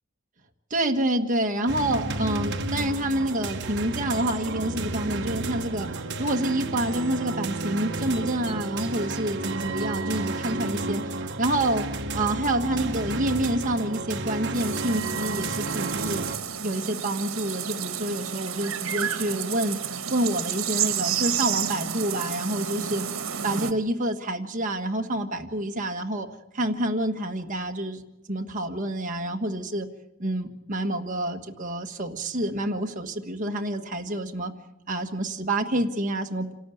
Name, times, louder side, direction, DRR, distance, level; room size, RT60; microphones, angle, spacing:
voice 1, 0.7-11.8 12.1-16.2 16.6-23.1 23.4-26.3 26.5-28.0 28.3-29.9 30.2-34.5 34.9-36.5, right 1 dB, 40° right, 4 dB, 1.6 m, -28 dB
sound 1, 1.7-16.4, right 2 dB, 60° right, 1.2 m, -31 dB
sound 2, 14.5-23.7, right 9 dB, 85° right, 1.3 m, -31 dB
27.0 x 13.0 x 9.3 m, 0.93 s
head